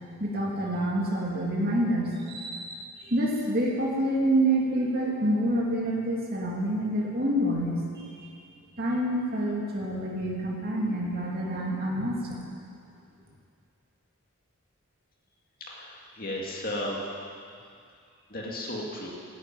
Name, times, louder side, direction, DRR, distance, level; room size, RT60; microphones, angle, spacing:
voice 1, 0.2-8.3 8.8-12.4, right 1 dB, 45° right, -4 dB, 2.7 m, -27 dB
voice 2, 15.7-17.0 18.3-19.1, left 1 dB, 40° left, -3 dB, 2.4 m, -34 dB
13.5 x 10.5 x 9.3 m, 2.3 s
head